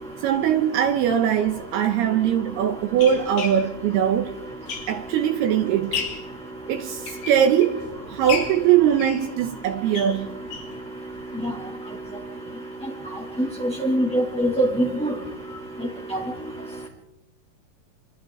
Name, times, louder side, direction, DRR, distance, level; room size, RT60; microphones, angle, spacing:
voice 1, 0.2-4.3 4.9-6.0 6.7-7.0 7.3-7.8 8.1-10.3, right 9 dB, 75° right, 2.7 m, -21 dB
sound 1, 1.4-1.5 2.3-5.3 5.7-6.3 6.8-7.8 8.3-10.8 11.2-11.3 11.5-11.6 12.0-12.1, left 6 dB, 75° left, 5.4 m, -34 dB
voice 2, 13.4-15.1 16.1-16.2, right 1 dB, ahead, 1.7 m, -23 dB
28.5 x 26.5 x 4.0 m
omnidirectional pair, 5.2 m